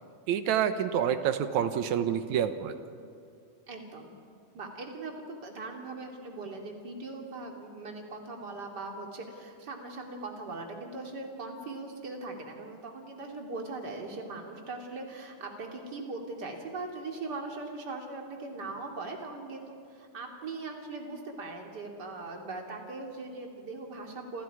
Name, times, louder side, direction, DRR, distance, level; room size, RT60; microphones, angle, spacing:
voice 1, 0.3-2.8, right 9 dB, 65° right, 9 dB, 2.2 m, -28 dB
voice 2, 3.7-4.1 4.5-24.4, right 3 dB, 30° right, 1 dB, 2.8 m, -40 dB
29.0 x 28.0 x 4.9 m, 2.3 s
omnidirectional pair, 4.0 m